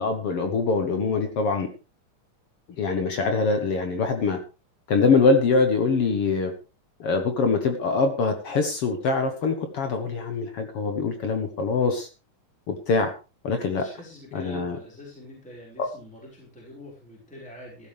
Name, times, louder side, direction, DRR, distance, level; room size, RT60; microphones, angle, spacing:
voice 1, 0.0-1.7 2.8-4.4 4.9-6.5 7.0-12.1 12.7-13.1 13.4-13.8 14.3-14.8 15.8-15.9, left 4 dB, 55° left, 6 dB, 2.0 m, -23 dB
voice 2, 13.8-17.9, left 1 dB, ahead, -3 dB, 4.6 m, -44 dB
15.0 x 13.0 x 3.4 m, 0.31 s
omnidirectional pair, 3.7 m